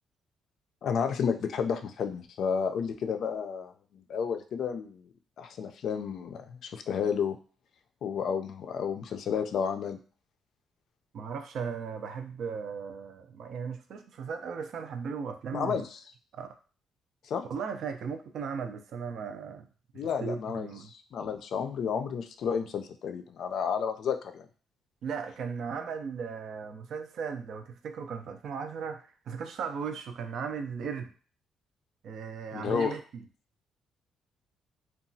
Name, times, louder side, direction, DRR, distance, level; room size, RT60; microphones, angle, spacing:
voice 1, 0.8-5.1 5.4-7.4 8.0-10.0 15.5-16.0 17.2-17.4 19.9-24.5 32.5-33.0, left 6 dB, 65° left, 7 dB, 0.3 m, -31 dB
voice 2, 11.1-15.8 16.4-16.5 17.5-19.7 19.9-20.9 25.0-31.1 32.0-33.2, right 6 dB, 70° right, 7 dB, 0.4 m, -37 dB
2.9 x 2.2 x 2.6 m, 0.40 s
cardioid pair, 90°, 0 cm